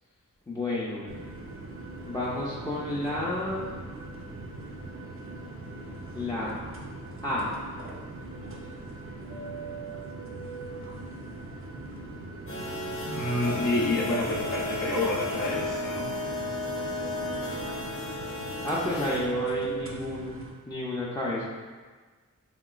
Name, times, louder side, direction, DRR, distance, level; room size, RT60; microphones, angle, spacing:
voice 1, 0.5-1.1 2.0-3.7 6.1-6.5 7.2-7.6 18.6-20.4 20.7-21.5, left 2 dB, 15° left, -7 dB, 0.4 m, -31 dB
sound 1, 1.1-20.5, right 3 dB, 40° right, 0.5 m, -40 dB
sound 2, 12.5-19.2, left 2 dB, 40° left, 0.7 m, -34 dB
voice 2, 13.0-16.1, left 2 dB, 65° left, -5 dB, 0.5 m, -28 dB
3.0 x 2.9 x 2.3 m, 1.5 s
wide cardioid pair, 50°, 33 cm